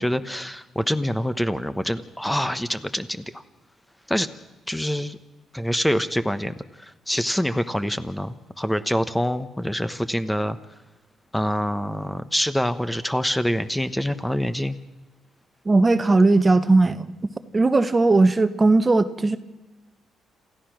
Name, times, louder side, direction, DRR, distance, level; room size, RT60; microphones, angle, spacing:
voice 1, 0.0-3.4 4.1-4.3 4.7-5.2 5.5-10.6 11.3-14.8, equal, 5° left, 11 dB, 1.1 m, -25 dB
voice 2, 15.6-17.2 17.5-19.4, right 3 dB, 25° right, 12 dB, 1.1 m, -18 dB
28.0 x 15.0 x 6.4 m, 1.1 s
cardioid pair, 90°, 0 cm